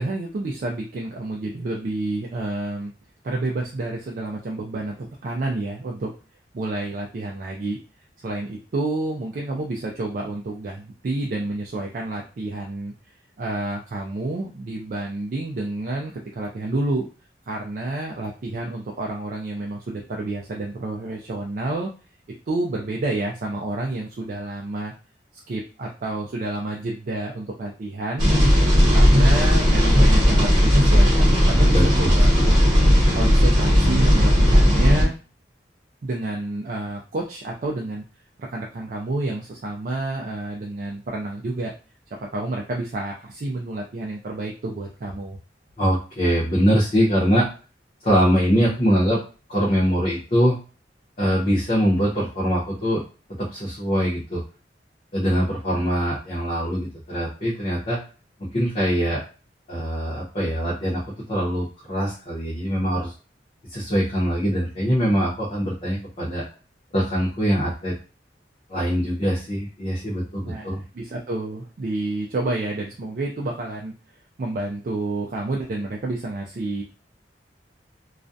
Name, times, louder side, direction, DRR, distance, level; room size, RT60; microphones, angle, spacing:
voice 1, 0.0-2.9 3.2-6.1 6.5-7.8 8.2-12.9 13.4-17.1 17.5-21.9 22.5-24.9 25.5-28.3 28.9-32.4 33.1-35.1 36.0-38.0 38.4-41.7 42.2-45.4 70.4-73.9 74.4-76.8, right 2 dB, 50° right, 0 dB, 0.4 m, -29 dB
sound 1, 28.2-35.0, equal, 25° right, 1.0 m, -16 dB
voice 2, 31.7-32.7 45.8-47.5 48.0-49.2 49.5-50.6 51.2-53.0 53.4-54.4 55.1-58.0 58.4-59.2 59.7-61.0 61.3-63.1 63.7-66.4 66.9-67.9 68.7-70.8, equal, 35° left, -7 dB, 0.7 m, -23 dB
2.4 x 2.1 x 2.5 m, 0.35 s
head